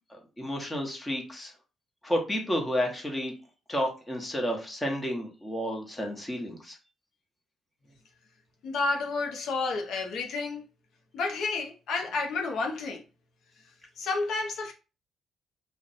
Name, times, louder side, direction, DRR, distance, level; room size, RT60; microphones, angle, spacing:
voice 1, 0.1-1.5 2.0-3.3 3.7-6.8, equal, 15° left, 0.9 m, -31 dB
voice 2, 8.6-10.6 11.1-13.0 14.0-14.7, left 3 dB, 75° left, 0.5 m, -30 dB
2.5 x 2.1 x 4.0 m
cardioid pair, 90°, 0 cm